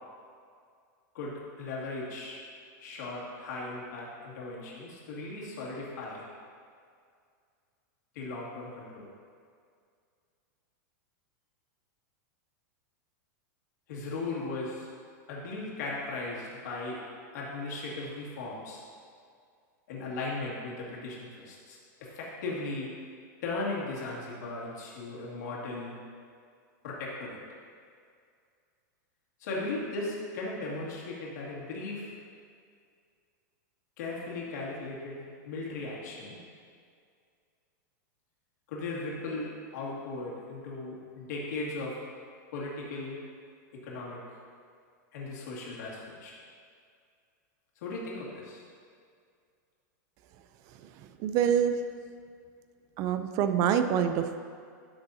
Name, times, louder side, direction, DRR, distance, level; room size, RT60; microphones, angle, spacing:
voice 1, 1.1-2.4 2.8-6.3 8.1-9.1 13.9-14.9 15.3-17.0 17.3-18.8 19.9-22.9 23.4-26.0 26.8-27.4 29.4-32.1 34.0-36.4 38.7-42.0 42.5-43.2 43.8-44.2 45.1-46.3 47.8-48.6, left 2 dB, 65° left, -5 dB, 2.2 m, -37 dB
voice 2, 51.2-51.7 53.0-54.4, right 8 dB, 35° right, 9 dB, 0.5 m, -25 dB
11.5 x 6.8 x 2.8 m, 2.2 s
supercardioid pair, 150°, 10 cm